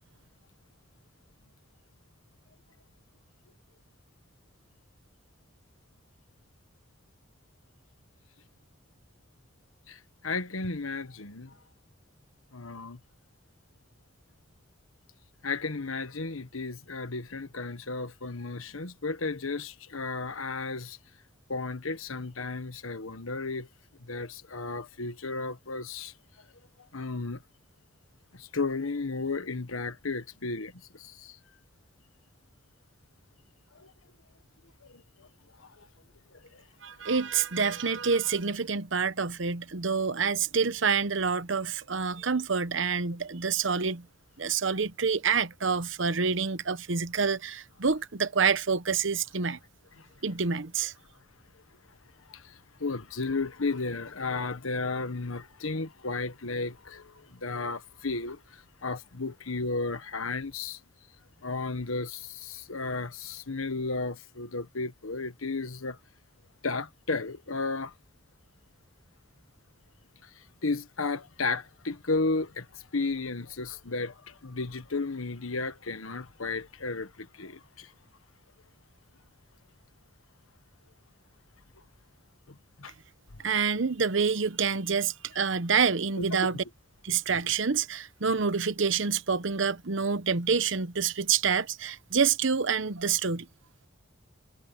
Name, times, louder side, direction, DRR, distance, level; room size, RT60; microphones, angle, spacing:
voice 1, 9.9-11.6 12.5-13.0 15.4-21.0 21.5-23.7 24.0-26.1 26.9-27.4 28.3-31.4 33.7-33.9 34.8-35.3 35.6-35.9 36.3-36.6 50.0-50.1 52.3-60.8 61.4-66.0 66.6-67.9 70.2-77.9 82.5-82.9 83.3-83.4 85.3-85.4, left 3 dB, 90° left, 1.4 m, -34 dB
voice 2, 36.8-44.1 44.4-49.6 50.2-50.9 83.4-86.6 87.0-93.5, right 5 dB, 70° right, 0.9 m, -27 dB
head